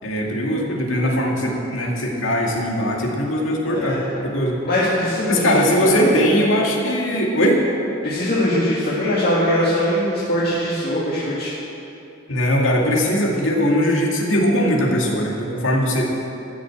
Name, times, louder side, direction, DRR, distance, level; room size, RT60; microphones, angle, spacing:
voice 1, 0.0-4.6 5.3-7.6 12.3-16.1, equal, 85° left, -1 dB, 2.1 m, -20 dB
voice 2, 3.7-4.0 4.6-6.1 8.0-11.5, left 1 dB, 55° left, -9 dB, 2.2 m, -21 dB
15.0 x 6.5 x 8.1 m, 2.9 s
head